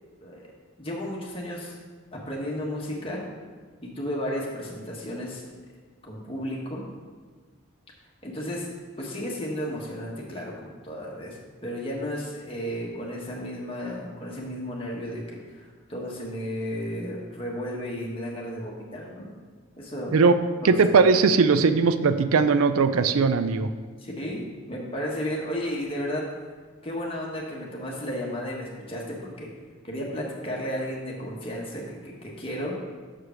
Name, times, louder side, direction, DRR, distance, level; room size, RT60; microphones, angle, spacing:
voice 1, 0.8-1.8 2.1-3.2 3.8-5.4 6.0-6.8 8.2-8.7 9.0-15.2 15.5-15.6 15.9-19.3 19.8-20.2 20.6-21.0 24.0-26.3 26.8-29.5 29.8-32.8, equal, 25° left, -3 dB, 1.3 m, -33 dB
voice 2, 20.6-23.7, right 4 dB, 90° right, 11 dB, 0.4 m, -19 dB
6.6 x 4.9 x 5.8 m, 1.5 s
head